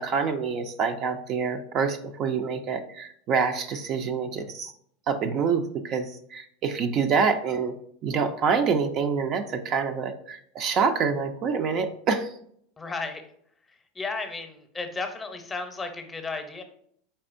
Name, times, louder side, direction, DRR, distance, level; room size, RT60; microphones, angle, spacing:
voice 1, 0.0-4.7 5.1-7.7 8.0-12.3, right 5 dB, 45° right, 7 dB, 0.5 m, -26 dB
voice 2, 12.8-13.2 13.7-16.6, left 3 dB, 20° left, 6 dB, 0.8 m, -34 dB
4.4 x 4.1 x 2.5 m, 0.65 s
hypercardioid pair, 105°, 0 cm